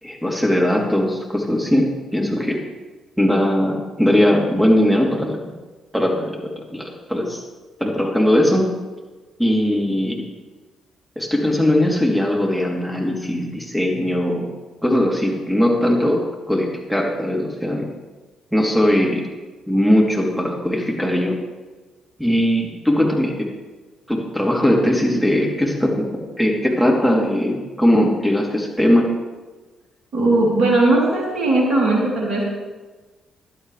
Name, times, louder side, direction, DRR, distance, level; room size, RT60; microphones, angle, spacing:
voice 1, 0.0-2.6 3.2-5.4 5.9-6.4 6.7-7.4 7.8-8.7 9.4-10.2 11.2-14.5 14.8-17.9 18.5-19.2 19.7-21.4 22.2-23.5 24.1-26.1 26.4-29.1, left 1 dB, ahead, -1 dB, 3.5 m, -19 dB
voice 2, 30.1-32.4, right 2 dB, 50° right, -4 dB, 3.7 m, -18 dB
16.0 x 11.5 x 3.5 m, 1.3 s
figure-of-eight pair, 40°, 0 cm